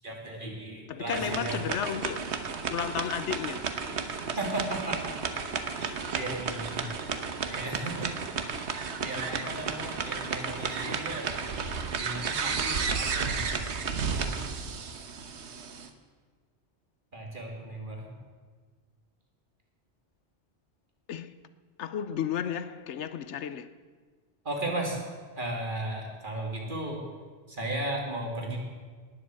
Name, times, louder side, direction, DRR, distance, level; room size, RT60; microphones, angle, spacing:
voice 1, 0.0-1.8 4.4-5.1 5.5-6.9 7.5-8.1 9.0-11.4 12.0-13.6 14.0-14.1 17.1-18.1 24.4-25.0 25.4-27.0 27.5-28.6, right 1 dB, 45° right, 2.9 m, -35 dB
voice 2, 0.9-2.4 2.7-3.7 21.1-21.3 21.8-23.7, left 9 dB, 80° left, 1.0 m, -33 dB
sound 1, 1.1-15.9, right 5 dB, 75° right, 1.3 m, -33 dB
19.0 x 7.9 x 7.7 m
omnidirectional pair, 1.2 m